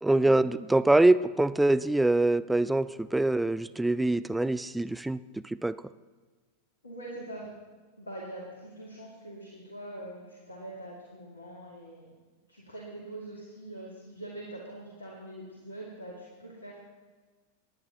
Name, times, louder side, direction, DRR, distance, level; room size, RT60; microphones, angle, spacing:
voice 1, 0.0-5.8, right 2 dB, 5° right, 14 dB, 0.3 m, -24 dB
voice 2, 6.8-7.5 8.0-12.1 12.5-16.8, right 1 dB, 75° left, -3 dB, 2.2 m, -43 dB
19.5 x 10.5 x 3.0 m, 1.3 s
figure-of-eight pair, 90°, 0 cm